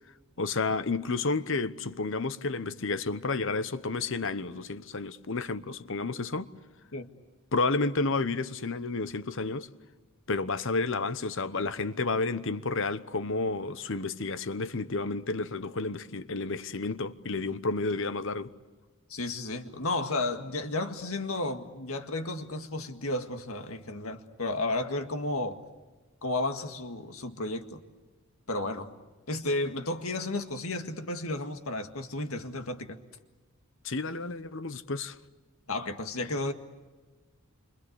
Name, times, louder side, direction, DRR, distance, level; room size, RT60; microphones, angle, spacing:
voice 1, 0.4-6.5 7.5-9.7 10.3-18.5 33.8-35.2, left 3 dB, 55° left, 1.0 m, -31 dB
voice 2, 19.1-25.6 26.2-27.8 28.5-28.9 29.3-33.0 35.7-36.5, left 2 dB, 75° left, 2.0 m, -33 dB
28.5 x 25.0 x 8.2 m
head